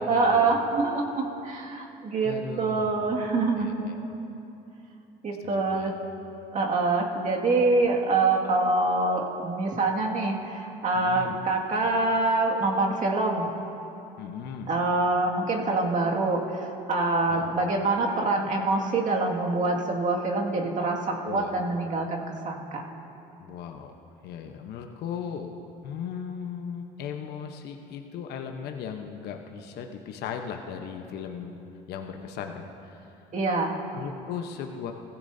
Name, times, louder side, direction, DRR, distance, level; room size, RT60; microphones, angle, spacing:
voice 1, 0.1-3.8 5.2-5.9 6.5-13.5 14.7-22.8 33.3-33.8, right 3 dB, 45° right, -1 dB, 2.1 m, -25 dB
voice 2, 2.2-2.9 3.6-4.0 5.4-5.9 10.9-11.4 14.2-14.7 17.3-17.5 21.2-21.5 23.4-23.9 24.2-25.5 25.8-31.6 31.9-33.3 33.9-34.9, left 7 dB, 65° left, 4 dB, 1.0 m, -37 dB
17.0 x 15.5 x 2.7 m, 2.8 s
supercardioid pair, 80°, 18 cm